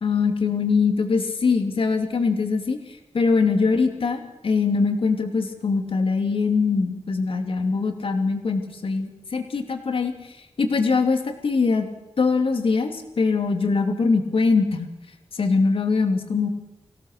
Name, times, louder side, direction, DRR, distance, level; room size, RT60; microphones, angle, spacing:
voice 1, 0.0-2.8 3.1-10.1 10.6-11.9 12.2-14.9 15.3-16.5, left 4 dB, 60° left, 5 dB, 2.7 m, -22 dB
25.0 x 17.5 x 6.6 m, 0.94 s
wide cardioid pair, 120°, 10 cm